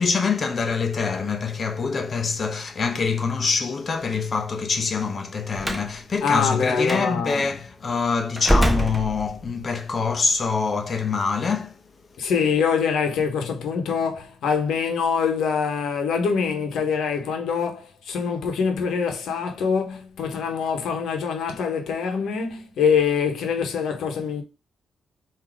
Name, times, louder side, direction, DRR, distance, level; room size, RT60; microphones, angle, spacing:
voice 1, 0.0-11.8, left 5 dB, 45° left, 0.8 m, -25 dB
Slam, 5.6-5.9 6.8-7.0 8.4-9.6, equal, ahead, 0.8 m, -23 dB
voice 2, 6.2-7.4 12.2-24.4, left 6 dB, 80° left, 1.0 m, -24 dB
3.8 x 2.8 x 4.7 m
cardioid pair, 80°, 0 cm